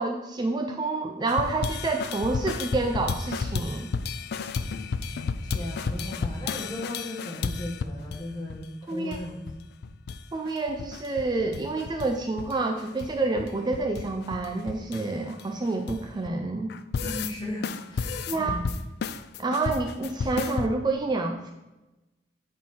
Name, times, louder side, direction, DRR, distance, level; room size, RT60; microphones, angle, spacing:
voice 1, 0.0-3.9 8.9-9.2 10.3-16.7 18.3-18.6 19.4-21.5, right 3 dB, 25° right, 3 dB, 0.4 m, -28 dB
sound 1, 1.3-8.2 8.5-8.6 8.9-9.6 9.8-10.2 10.5-12.1 12.4-16.3 16.7-17.3 17.6-20.7, left 5 dB, 60° left, 0.3 m, -32 dB
voice 2, 5.4-9.7 17.0-18.7, left 1 dB, 25° left, -3 dB, 1.6 m, -36 dB
8.5 x 3.7 x 4.3 m, 1.0 s
head